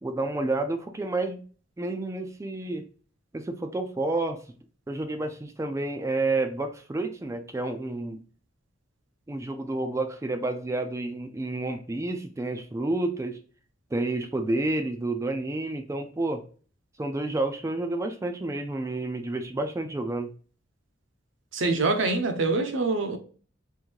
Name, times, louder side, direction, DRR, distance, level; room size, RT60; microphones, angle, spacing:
voice 1, 0.0-1.4 1.8-2.8 3.3-4.4 4.9-8.2 9.3-13.4 13.9-16.4 17.0-20.3, right 2 dB, 15° right, 0.3 m, -30 dB
voice 2, 21.5-23.2, right 3 dB, 80° right, 0.7 m, -25 dB
3.6 x 2.6 x 3.0 m
head